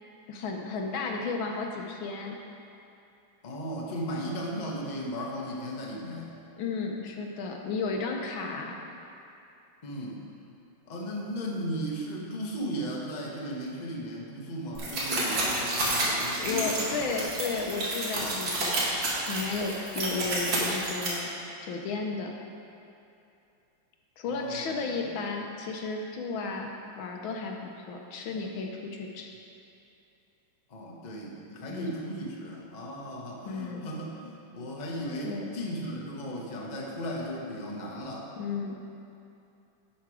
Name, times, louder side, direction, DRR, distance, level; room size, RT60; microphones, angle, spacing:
voice 1, 0.3-2.4 6.6-8.8 16.4-18.9 19.3-21.3 21.6-22.3 24.2-26.7 27.0-29.3 31.7-31.9 33.4-33.8 35.2-35.4 38.4-38.8, left 4 dB, 75° left, 2 dB, 1.6 m, -33 dB
voice 2, 3.4-6.3 9.8-10.2 10.8-17.3 24.3-24.8 30.7-38.3, equal, 30° left, -3 dB, 1.0 m, -36 dB
sound 1, 14.8-21.1, right 1 dB, 65° right, 2.4 m, -30 dB
11.0 x 5.9 x 4.9 m, 2.7 s
omnidirectional pair, 2.2 m